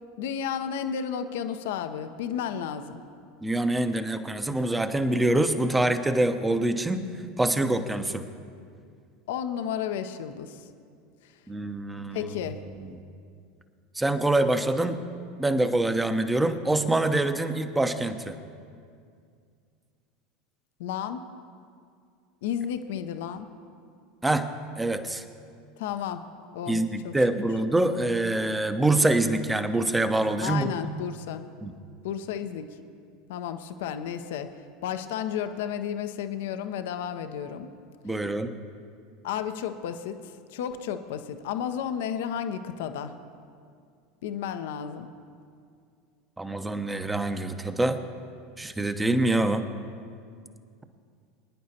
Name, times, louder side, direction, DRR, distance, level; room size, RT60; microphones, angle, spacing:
voice 1, 0.2-3.0 9.3-10.7 11.2-11.3 12.1-12.6 20.8-21.2 22.4-23.5 25.8-26.3 26.5-27.1 30.4-31.5 32.0-32.7 33.3-34.5 34.8-37.7 39.2-43.1 44.2-45.1, left 8 dB, 65° left, 9 dB, 0.7 m, -32 dB
voice 2, 3.4-7.1 7.4-8.3 11.5-12.3 12.8-12.9 13.9-15.0 15.4-18.3 24.2-24.5 24.8-25.2 26.7-30.7 31.6-31.7 38.0-38.5 46.4-48.0 48.6-49.6, right 2 dB, 10° right, 9 dB, 0.8 m, -25 dB
24.0 x 10.0 x 2.8 m, 2.3 s
figure-of-eight pair, 80°, 0 cm